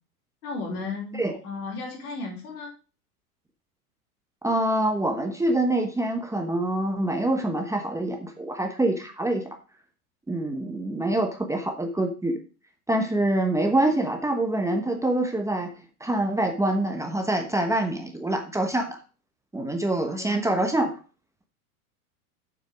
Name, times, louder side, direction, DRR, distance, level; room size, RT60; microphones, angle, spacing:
voice 1, 0.4-2.7 20.1-20.5, left 3 dB, 70° left, -1 dB, 4.2 m, -35 dB
voice 2, 4.4-9.4 10.3-12.4 12.9-15.7 16.0-19.0 19.5-21.0, right 1 dB, 5° right, 4 dB, 1.0 m, -25 dB
7.2 x 6.2 x 5.0 m, 0.36 s
hypercardioid pair, 105°, 45 cm